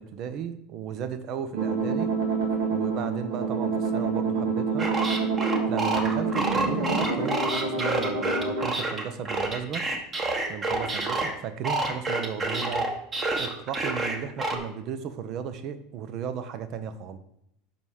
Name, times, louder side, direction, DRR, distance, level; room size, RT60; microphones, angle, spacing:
voice 1, 0.0-2.1 2.7-4.9 5.7-9.9 10.5-12.9 13.4-17.2, right 7 dB, 50° right, 11 dB, 0.8 m, -35 dB
sound 1, 1.5-8.6, right 4 dB, 85° right, 2.1 m, -27 dB
sound 2, 4.8-11.3 11.6-14.6, right 2 dB, 30° right, 1.5 m, -28 dB
7.3 x 5.7 x 4.8 m, 0.75 s
hypercardioid pair, 95°, 0 cm